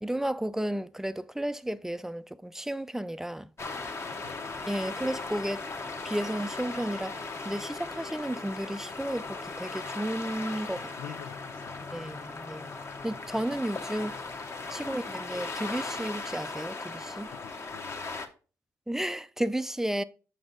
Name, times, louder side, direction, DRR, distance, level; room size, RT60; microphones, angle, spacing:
voice 1, 0.0-3.5 4.7-5.6 6.0-10.9 11.9-12.7 13.0-14.2 14.7-17.3 18.9-20.0, right 1 dB, 5° right, 0.4 m, -33 dB
sound 1, 3.6-18.3, left 3 dB, 35° left, 1.0 m, -38 dB
voice 2, 4.1-4.6 10.7-12.1 14.7-14.9 17.3-18.3, left 11 dB, 85° left, 0.4 m, -48 dB
6.0 x 5.3 x 3.8 m
supercardioid pair, 70°, 7 cm